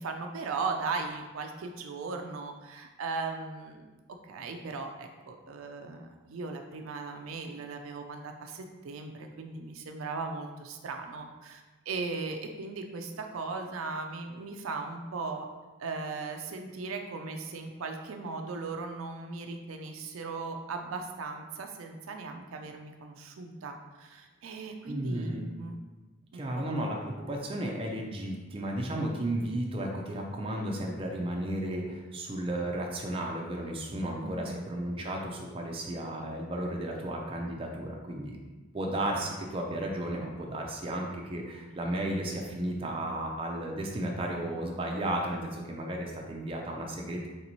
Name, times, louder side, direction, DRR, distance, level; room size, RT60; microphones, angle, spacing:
voice 1, 0.0-3.9 4.2-15.5 15.8-25.8 26.3-26.9 34.2-34.7, right 4 dB, 85° right, 4 dB, 0.4 m, -38 dB
voice 2, 24.9-25.5 26.3-38.4 38.7-47.3, right 1 dB, 25° right, 0 dB, 0.4 m, -34 dB
3.3 x 3.0 x 4.0 m, 1.2 s
head